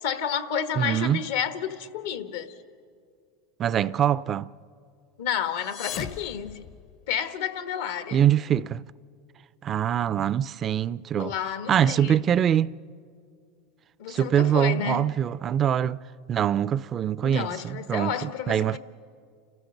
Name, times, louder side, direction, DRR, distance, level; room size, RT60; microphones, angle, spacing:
voice 1, 0.0-2.6 5.2-6.7 7.1-8.3 11.2-12.2 14.0-15.0 17.2-18.8, left 8 dB, 80° left, 1.2 m, -30 dB
voice 2, 0.8-1.2 3.6-4.5 8.1-8.8 9.6-11.3 11.7-12.7 14.1-16.0 16.3-18.8, right 9 dB, 35° right, 0.4 m, -24 dB
sound 1, 5.5-7.4, left 9 dB, 55° left, 0.8 m, -39 dB
30.0 x 14.0 x 6.5 m
supercardioid pair, 105°, 0 cm